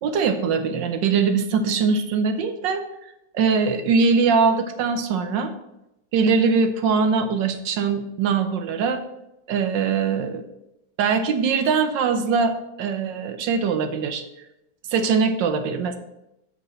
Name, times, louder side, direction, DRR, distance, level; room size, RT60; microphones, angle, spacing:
voice 1, 0.0-2.8 3.3-5.5 6.1-9.0 9.5-10.4 11.0-14.2 14.9-16.0, right 5 dB, 70° right, 8 dB, 1.3 m, -22 dB
6.3 x 5.2 x 6.2 m, 0.87 s
omnidirectional pair, 2.2 m